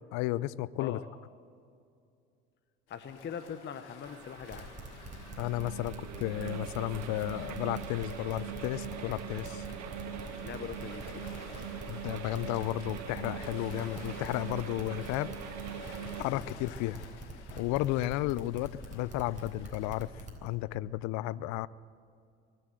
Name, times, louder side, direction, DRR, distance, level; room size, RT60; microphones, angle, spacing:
voice 1, 0.1-1.0 5.4-9.7 11.9-15.3 16.2-17.0 17.6-21.7, left 16 dB, 60° left, 20 dB, 0.5 m, -33 dB
Waves surf, 2.9-20.1, left 6 dB, 85° left, 1.6 m, -53 dB
voice 2, 2.9-4.7 10.4-11.2 16.3-16.4, left 7 dB, 35° left, 9 dB, 0.8 m, -41 dB
sound 1, 4.0-16.2, right 7 dB, 55° right, 1.5 m, -42 dB
sound 2, 4.5-20.5, right 2 dB, 25° right, 3.8 m, -44 dB
23.0 x 7.8 x 7.8 m, 2.4 s
hypercardioid pair, 75°, 33 cm